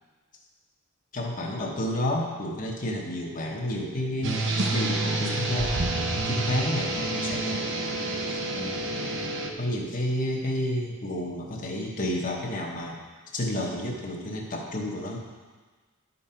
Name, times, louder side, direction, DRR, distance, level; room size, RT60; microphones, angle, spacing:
voice 1, 1.1-4.4 4.7-5.9 6.2-7.7 8.1-8.9 9.6-13.0 13.3-15.2, left 1 dB, 40° left, -1 dB, 1.1 m, -30 dB
sound 1, 4.2-9.5, right 2 dB, 60° right, 0.9 m, -28 dB
11.0 x 5.4 x 4.4 m, 1.4 s
head